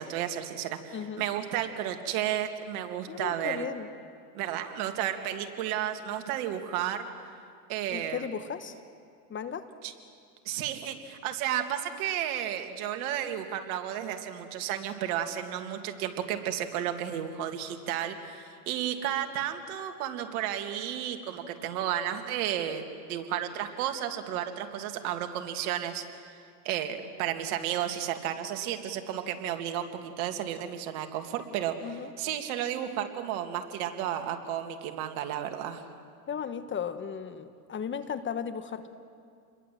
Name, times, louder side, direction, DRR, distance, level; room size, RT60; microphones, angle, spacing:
voice 1, 0.0-3.7 4.3-7.1 7.7-8.2 9.8-9.9 10.4-22.8 23.1-26.0 26.6-35.8, right 10 dB, 60° right, 6 dB, 2.6 m, -32 dB
voice 2, 0.9-1.2 3.1-3.9 7.9-8.8 9.3-9.7 31.8-32.1 36.3-38.9, left 7 dB, 25° left, 11 dB, 1.2 m, -35 dB
28.5 x 22.0 x 7.8 m, 2.3 s
hypercardioid pair, 110°, 49 cm